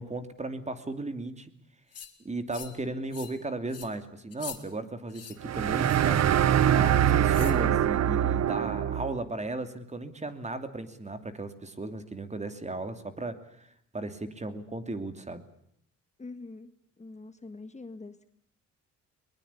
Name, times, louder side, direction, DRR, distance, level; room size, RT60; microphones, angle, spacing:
voice 1, 0.0-1.5 2.2-13.7 13.9-15.4, right 2 dB, 20° right, 10 dB, 2.8 m, -36 dB
sound 1, 1.9-2.1 2.5-2.8 3.1-3.4 3.7-3.9 4.3-4.6 5.1-5.4 5.8-6.1 7.3-7.6, left 8 dB, 55° left, 3.3 m, -43 dB
sound 2, 5.4-9.2, right 10 dB, 60° right, 0.9 m, -24 dB
voice 2, 16.2-16.7 17.0-18.2, left 3 dB, 25° left, 9 dB, 1.6 m, -44 dB
22.5 x 20.5 x 8.5 m, 0.71 s
cardioid pair, 90°, 30 cm